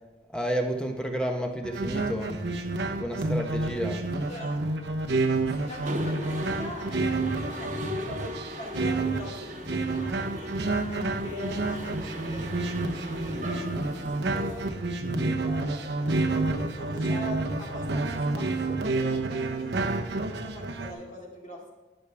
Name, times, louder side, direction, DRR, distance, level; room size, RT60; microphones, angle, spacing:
voice 1, 0.3-2.3 3.0-4.0 15.0-15.4, equal, 5° left, 3 dB, 1.0 m, -31 dB
sound 1, 1.6-20.9, right 2 dB, 70° right, 0.9 m, -29 dB
voice 2, 4.2-4.6 5.5-10.5 11.2-14.7 15.4-19.9 20.3-21.7, left 2 dB, 40° left, -2 dB, 2.3 m, -42 dB
Mechanisms, 5.7-14.7, equal, 45° right, 1.2 m, -38 dB
11.5 x 10.0 x 3.5 m, 1.3 s
head